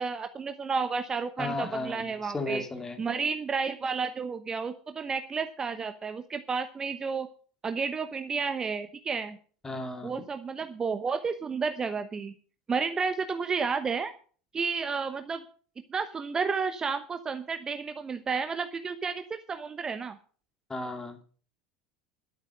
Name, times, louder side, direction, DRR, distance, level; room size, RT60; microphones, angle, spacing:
voice 1, 0.0-2.6 3.0-7.3 7.6-9.4 10.0-12.3 12.7-14.1 14.5-15.4 15.9-20.2, right 5 dB, 25° right, 9 dB, 1.0 m, -31 dB
voice 2, 1.4-3.0 9.6-10.2 20.7-21.2, left 2 dB, 15° left, 6 dB, 2.5 m, -35 dB
12.0 x 8.7 x 6.6 m, 0.43 s
figure-of-eight pair, 75°, 3 cm